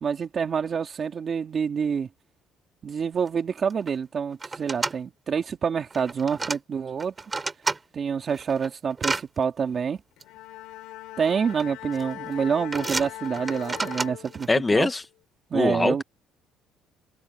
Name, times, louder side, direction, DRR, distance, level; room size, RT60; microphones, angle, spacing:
voice 1, 0.0-2.1 2.8-7.1 7.9-10.0 11.2-14.9 15.5-16.0, right 6 dB, 35° right, 2.9 m, -27 dB
sound 1, 3.3-3.4 3.6-3.9 4.4-5.0 5.9-6.6 7.0-7.8 8.3-9.2 10.2-10.3 11.3-11.6 11.9-12.3 12.7-14.5, right 3 dB, 20° right, 4.6 m, -30 dB
Bowed string instrument, 10.2-14.8, left 16 dB, 85° left, 4.7 m, -40 dB
voice 2, 14.5-15.0 15.5-16.0, left 3 dB, 15° left, 0.9 m, -22 dB
cardioid pair, 130°, 0 cm